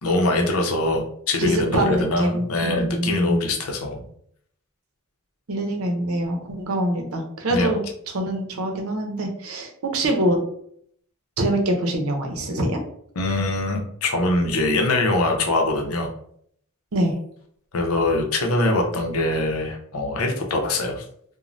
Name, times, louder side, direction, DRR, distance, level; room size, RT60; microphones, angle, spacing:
voice 1, 0.0-4.0 7.5-7.7 13.2-16.1 17.7-21.0, left 2 dB, 85° left, 2 dB, 0.6 m, -23 dB
voice 2, 1.4-3.4 5.5-7.8 8.1-10.4 11.4-12.8 16.9-17.1, right 1 dB, 90° right, 3 dB, 0.6 m, -24 dB
2.5 x 2.1 x 3.1 m, 0.66 s
head